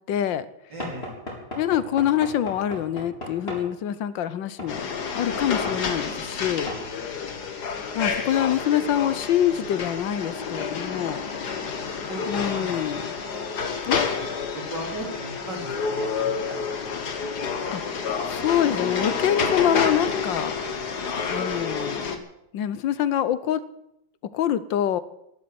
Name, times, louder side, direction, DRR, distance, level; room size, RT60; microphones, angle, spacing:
voice 1, 0.1-0.5 1.6-4.8 5.1-6.7 7.9-11.3 12.3-13.0 13.8-14.0 17.7-17.8 18.3-20.5 21.3-22.3 22.5-23.6 24.3-25.0, left 10 dB, 75° left, 15 dB, 1.5 m, -25 dB
voice 2, 0.7-1.2 12.1-13.1 14.5-16.8 17.2-17.3, right 1 dB, 60° right, 1 dB, 4.4 m, -37 dB
Knock / Wood, 0.8-3.7 4.6-4.8 5.7-5.8 6.7-6.9, left 1 dB, 30° left, 4.5 m, -36 dB
sound 1, 4.7-22.2, left 5 dB, 55° left, 2.0 m, -29 dB
12.5 x 12.0 x 9.5 m, 0.80 s
omnidirectional pair, 2.1 m